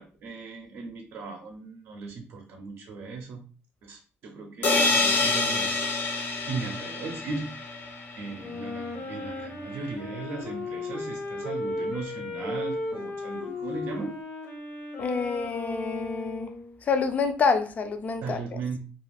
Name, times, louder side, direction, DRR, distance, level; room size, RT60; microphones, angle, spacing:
voice 1, 0.0-3.4 3.8-6.1 6.5-7.5 8.2-14.2 18.2-18.9, right 4 dB, 70° right, 2 dB, 0.5 m, -37 dB
sound 1, 4.6-8.4, left 3 dB, 55° left, 0.8 m, -27 dB
Wind instrument woodwind instrument, 8.4-16.8, left 2 dB, 75° left, 1.2 m, -35 dB
voice 2, 15.0-16.5 16.8-18.6, left 5 dB, 35° left, 7 dB, 0.4 m, -27 dB
2.4 x 2.4 x 3.2 m, 0.38 s
cardioid pair, 125°, 4 cm